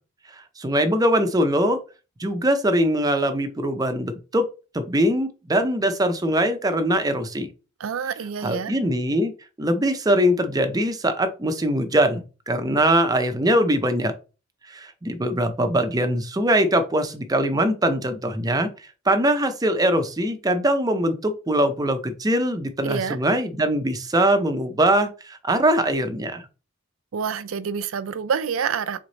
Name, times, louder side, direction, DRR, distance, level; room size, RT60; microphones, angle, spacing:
voice 1, 0.3-1.8 2.2-4.5 4.7-7.5 8.4-9.3 9.6-14.1 14.7-18.7 19.1-26.5, right 1 dB, 20° right, 0.5 m, -22 dB
voice 2, 7.8-8.7 22.8-23.2 27.1-29.0, right 6 dB, 80° right, 0.4 m, -27 dB
3.5 x 3.2 x 3.9 m
head